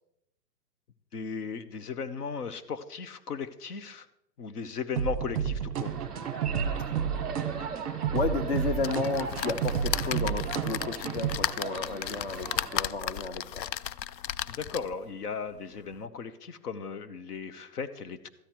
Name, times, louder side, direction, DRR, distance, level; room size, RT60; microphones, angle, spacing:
voice 1, 1.1-4.1 4.4-6.0 14.5-18.3, left 5 dB, 65° left, 12 dB, 1.1 m, -36 dB
sound 1, 5.0-11.4, right 8 dB, 20° right, 0.8 m, -31 dB
sound 2, 5.8-12.9, right 5 dB, ahead, 0.3 m, -40 dB
voice 2, 8.1-13.7, left 4 dB, 40° left, 9 dB, 0.6 m, -33 dB
sound 3, 8.8-15.0 15.6-15.7 15.9-16.0, left 11 dB, 80° left, 0.6 m, -35 dB
13.5 x 9.9 x 4.5 m, 0.79 s
hypercardioid pair, 170°, 50 cm